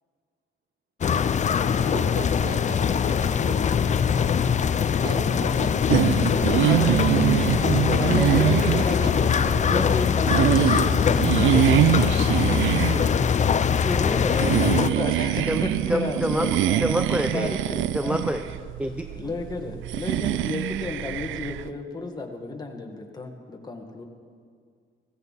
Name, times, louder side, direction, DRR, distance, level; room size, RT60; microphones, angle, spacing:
sound 1, 1.0-14.9, left 7 dB, 35° left, 0.5 m, -22 dB
voice 1, 1.9-3.6 5.0-5.8 6.3-6.9 7.9-10.0 11.5-13.2 14.6-15.8, right 6 dB, 55° right, 8 dB, 1.0 m, -37 dB
sound 2, 5.9-21.7, right 12 dB, 75° right, 0.4 m, -24 dB
voice 2, 6.6-7.0 8.0-9.1 9.7-11.8 13.8-16.8 17.3-18.2 19.1-24.0, left 3 dB, 20° left, 2 dB, 1.8 m, -32 dB
voice 3, 15.9-17.5 17.9-18.4 18.8-19.1, equal, 5° right, 6 dB, 0.6 m, -27 dB
16.0 x 15.5 x 4.2 m, 2.1 s
cardioid pair, 90°, 20 cm